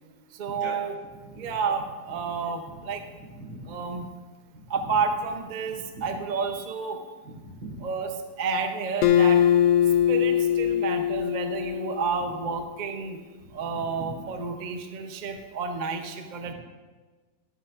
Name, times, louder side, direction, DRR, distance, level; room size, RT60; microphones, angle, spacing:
voice 1, 0.3-1.0 1.3-3.0 3.7-4.1 4.7-7.0 7.8-9.4 10.1-13.2 13.5-16.5, right 5 dB, 55° right, 5 dB, 0.5 m, -30 dB
voice 2, 3.1-3.7 4.5-4.6 5.9-6.1 7.2-7.8 13.4-13.5 14.0-14.1, right 1 dB, 80° right, -5 dB, 4.0 m, -41 dB
Acoustic guitar, 9.0-12.4, left 10 dB, 75° left, 1.2 m, -22 dB
13.0 x 11.5 x 2.5 m, 1.3 s
omnidirectional pair, 2.1 m